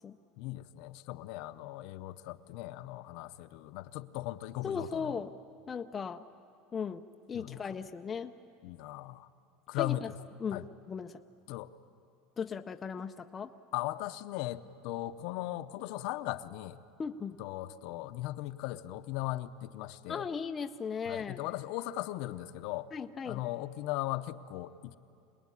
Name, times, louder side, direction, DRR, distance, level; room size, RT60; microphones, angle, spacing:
voice 1, 0.4-5.2 7.3-7.6 8.6-9.3 9.7-10.1 10.5-10.6 11.5-11.7 13.7-16.8 17.4-20.3 21.1-22.9 23.2-25.0, left 16 dB, 55° left, 10 dB, 0.8 m, -38 dB
voice 2, 4.6-5.3 5.7-6.3 6.7-8.3 9.8-10.1 10.4-10.6 10.9-11.2 12.4-13.5 17.0-17.4 20.1-21.4 22.9-23.4, left 6 dB, 20° left, 6 dB, 0.5 m, -37 dB
25.5 x 20.0 x 9.9 m, 2.5 s
cardioid pair, 165°, 0 cm